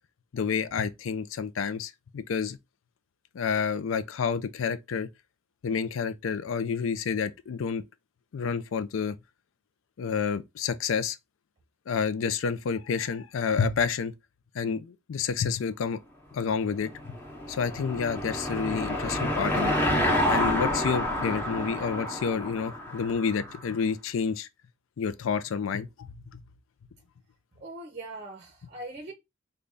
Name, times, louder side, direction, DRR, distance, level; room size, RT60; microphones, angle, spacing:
voice 1, 0.3-2.6 3.3-5.1 5.6-7.8 8.3-9.2 10.0-11.2 11.9-14.1 14.5-16.0 16.3-16.9 17.5-19.8 20.3-24.5 25.0-26.4, left 6 dB, 70° left, 0.4 m, -29 dB
Car passing by / Engine, 16.7-23.6, left 1 dB, 10° left, 0.9 m, -29 dB
voice 2, 27.6-29.1, right 2 dB, 35° right, 0.6 m, -41 dB
3.4 x 2.2 x 3.8 m
head